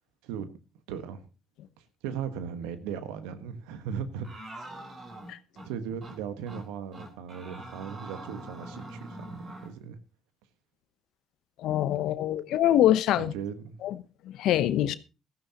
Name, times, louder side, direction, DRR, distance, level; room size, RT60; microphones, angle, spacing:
voice 1, 0.9-1.3 2.0-4.3 5.6-10.0 13.2-13.8, right 7 dB, 85° right, 1.3 m, -37 dB
sound 1, 4.2-5.7 6.0-6.2 6.5-6.7 6.9-9.7, right 1 dB, 55° right, 3.8 m, -43 dB
voice 2, 11.6-13.3 13.8-14.0 14.3-14.9, left 12 dB, 75° left, 0.8 m, -24 dB
15.5 x 14.0 x 2.9 m
hypercardioid pair, 55°, 0 cm